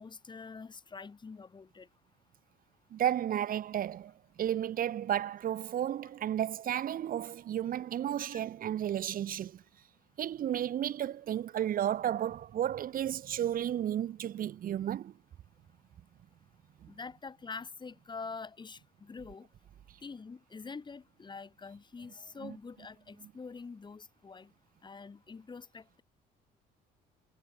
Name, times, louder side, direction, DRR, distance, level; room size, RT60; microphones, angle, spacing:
voice 1, 0.0-1.9 8.3-8.4 16.9-19.5 20.0-24.5 24.8-26.0, left 4 dB, 25° left, 6.6 m, -45 dB
voice 2, 2.9-4.1 4.4-9.6 10.2-15.1 16.8-16.9 22.4-22.6, right 11 dB, 55° right, 3.3 m, -33 dB
cardioid pair, 110°, 17 cm